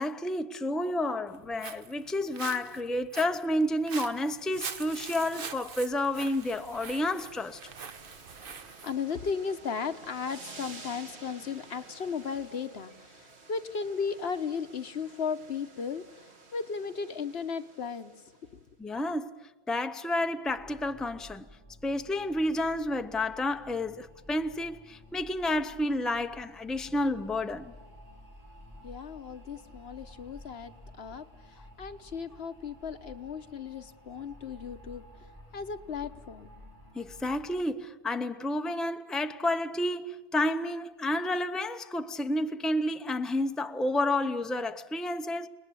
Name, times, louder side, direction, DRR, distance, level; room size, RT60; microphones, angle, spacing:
voice 1, 0.0-7.6 18.8-19.4 19.7-21.5 21.8-27.7 36.9-45.5, left 1 dB, ahead, 0.7 m, -30 dB
Walk footsteps, 1.3-8.9, right 6 dB, 55° right, 1.2 m, -43 dB
sound 1, 5.4-18.6, right 3 dB, 85° right, 2.2 m, -52 dB
voice 2, 8.8-18.1 18.5-18.6 28.8-35.0 35.5-36.5, left 6 dB, 70° left, 1.3 m, -36 dB
sound 2, 20.5-37.6, left 1 dB, 15° right, 5.2 m, -52 dB
30.0 x 20.0 x 8.5 m
omnidirectional pair, 1.1 m